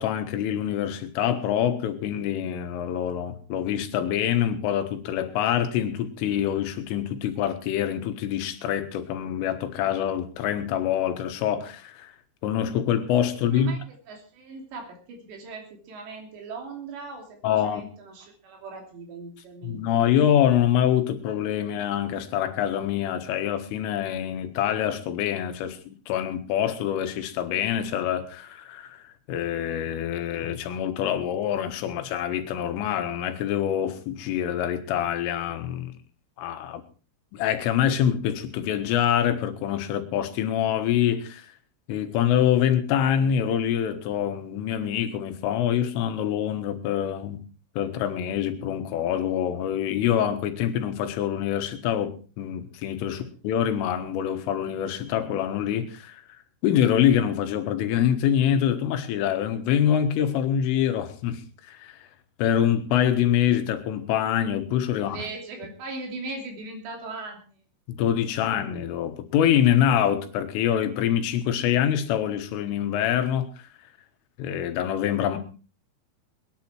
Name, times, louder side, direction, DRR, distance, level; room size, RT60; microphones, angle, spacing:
voice 1, 0.0-12.1 12.4-13.7 17.4-17.8 19.6-35.9 36.4-36.8 37.3-41.5 41.9-47.4 47.8-56.2 56.6-61.4 61.7-62.0 62.4-65.2 67.9-73.5 74.4-75.4, left 10 dB, 90° left, 4.0 m, -25 dB
voice 2, 13.5-19.8 53.1-53.3 64.9-67.6, right 3 dB, 65° right, 5.1 m, -39 dB
20.5 x 10.5 x 4.5 m
omnidirectional pair, 5.6 m